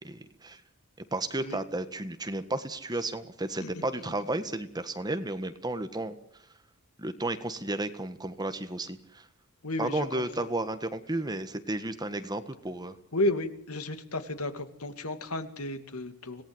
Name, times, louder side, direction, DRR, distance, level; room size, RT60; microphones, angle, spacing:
voice 1, 0.0-0.6 1.0-6.4 7.0-9.3 9.8-13.0, right 2 dB, 20° right, 10 dB, 1.6 m, -33 dB
voice 2, 9.6-10.2 13.1-16.4, left 1 dB, 85° left, 9 dB, 2.6 m, -32 dB
26.0 x 18.5 x 8.0 m, 0.69 s
head